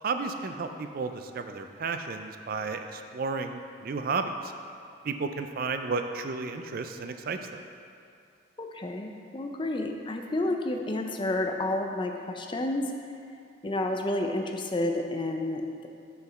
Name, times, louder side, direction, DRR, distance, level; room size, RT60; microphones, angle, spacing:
voice 1, 0.0-4.5 5.0-7.6, right 4 dB, 50° right, 7 dB, 0.4 m, -33 dB
voice 2, 8.6-12.9 13.6-15.9, left 1 dB, 25° left, 3 dB, 0.5 m, -30 dB
6.6 x 5.0 x 5.6 m, 2.5 s
head